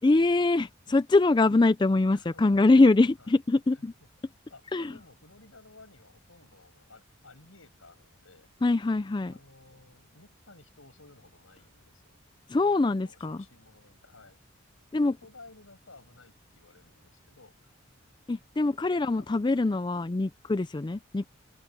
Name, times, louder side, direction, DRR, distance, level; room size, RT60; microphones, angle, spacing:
voice 1, 0.0-3.9 4.7-4.9 8.6-9.3 12.5-13.4 14.9-15.1 18.3-21.3, left 2 dB, 20° left, 0.3 m, -23 dB
voice 2, 2.1-2.7 3.2-3.3 3.7-4.1 4.5-8.5 9.3-12.2 12.6-14.4 14.9-17.6 19.1-19.3, left 3 dB, 85° left, 7.6 m, -55 dB
open air
head